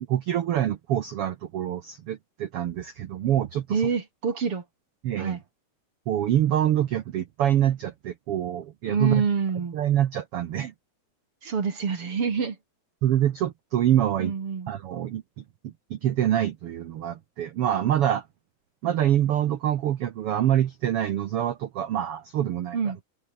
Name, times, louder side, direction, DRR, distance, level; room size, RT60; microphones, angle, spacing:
voice 1, 0.1-3.8 5.0-5.4 6.1-9.2 9.7-10.7 13.0-14.3 14.7-15.4 15.9-18.2 18.8-22.8, right 11 dB, 80° right, 1.3 m, -25 dB
voice 2, 3.7-4.6 5.2-5.4 8.9-9.8 11.4-12.6 14.2-14.7 22.7-23.0, right 6 dB, 40° right, 3.1 m, -26 dB
omnidirectional pair, 4.0 m